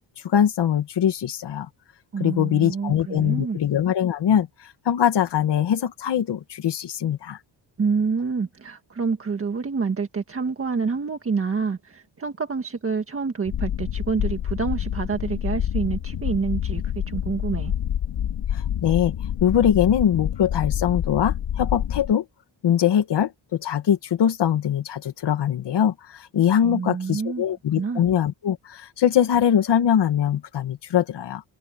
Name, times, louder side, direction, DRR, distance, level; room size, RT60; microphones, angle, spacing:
voice 1, 0.2-1.7 2.2-4.5 4.9-7.4 18.5-19.2 19.4-22.2 22.6-31.4, left 9 dB, 60° left, 2.0 m, -22 dB
voice 2, 2.1-3.6 7.8-17.7 26.6-27.4 27.8-28.0, right 5 dB, 30° right, 1.7 m, -27 dB
sound 1, 13.5-22.1, left 10 dB, 75° left, 3.0 m, -27 dB
wide cardioid pair, 180°, 46 cm